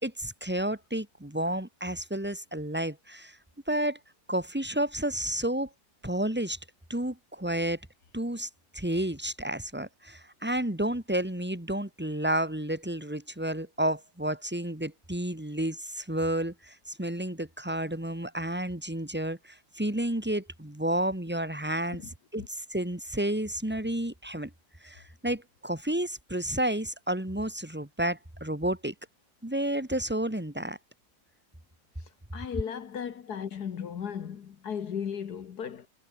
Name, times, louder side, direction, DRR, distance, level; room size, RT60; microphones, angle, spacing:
voice 1, 0.0-3.4 3.7-4.0 4.3-5.7 6.0-6.6 6.9-7.8 8.1-22.0 22.3-24.5 24.8-28.9 29.4-30.8, right 1 dB, 5° right, 2.6 m, -31 dB
voice 2, 32.3-35.9, left 7 dB, 60° left, 1.7 m, -36 dB
omnidirectional pair, 1.9 m